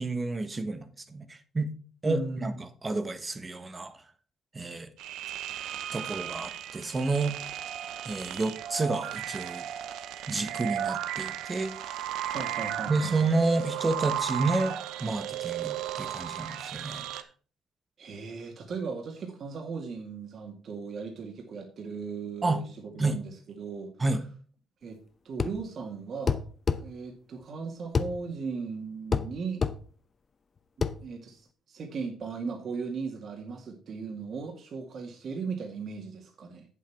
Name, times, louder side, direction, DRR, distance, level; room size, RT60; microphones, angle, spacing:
voice 1, 0.0-1.7 2.0-4.0 4.5-4.9 5.9-7.4 8.0-9.7 10.3-12.0 12.9-17.2 22.4-22.6 23.0-23.2 24.0-24.2, right 3 dB, 25° right, 1.2 m, -30 dB
voice 2, 2.0-2.6 12.3-13.2 18.0-23.9 24.8-25.0 25.2-26.4 26.8-29.6 30.8-36.7, right 5 dB, 55° right, 2.0 m, -37 dB
sound 1, 5.0-17.2, right 11 dB, 85° right, 0.7 m, -35 dB
sound 2, 25.4-25.6 26.3-26.8 28.0-28.1 29.1-29.3 29.6-29.8 30.8-31.0, left 5 dB, 40° left, 0.7 m, -26 dB
8.4 x 7.6 x 4.6 m
cardioid pair, 90°, 0 cm